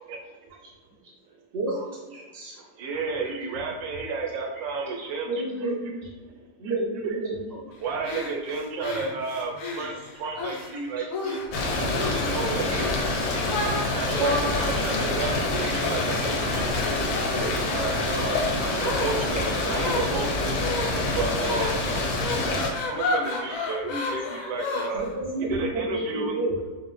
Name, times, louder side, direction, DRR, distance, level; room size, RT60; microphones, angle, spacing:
voice 1, 2.1-2.7 4.5-4.6 8.5-9.2 9.6-10.2 10.5-11.0 12.0-13.6 14.4-14.6 16.2-16.7 18.6-18.8 19.3-19.5 20.4-20.5 21.8-21.9 22.5-22.6 24.3-24.5 25.9-26.0, right 1 dB, ahead, -6 dB, 0.3 m, -48 dB
voice 2, 2.8-5.3 5.6-5.7 6.6-6.7 7.0-7.2 7.8-11.4 11.8-12.9 13.9-16.7 17.3-20.7 21.2-21.7 22.9-25.0 25.4-26.4, right 4 dB, 85° right, 2 dB, 1.3 m, -32 dB
voice 3, 5.2-6.0 6.6-7.6 14.1-14.6 21.4-21.5 24.9-26.6, right 1 dB, 55° right, -2 dB, 0.6 m, -29 dB
sound 1, 8.0-10.7 11.1-11.6 11.9-12.3 12.7-13.0 13.4-25.1, left 3 dB, 70° left, 0.8 m, -33 dB
sound 2, 11.5-22.7, left 2 dB, 90° left, 1.4 m, -26 dB
5.0 x 2.1 x 3.1 m, 1.3 s
omnidirectional pair, 2.0 m